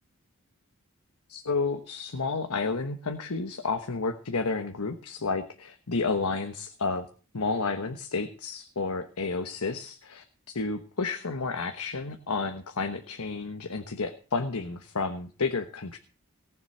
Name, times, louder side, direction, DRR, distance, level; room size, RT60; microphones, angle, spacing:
voice 1, 1.3-7.1 7.3-10.2 10.5-16.0, left 4 dB, 90° left, 7 dB, 1.2 m, -31 dB
18.0 x 7.2 x 6.5 m, 0.38 s
head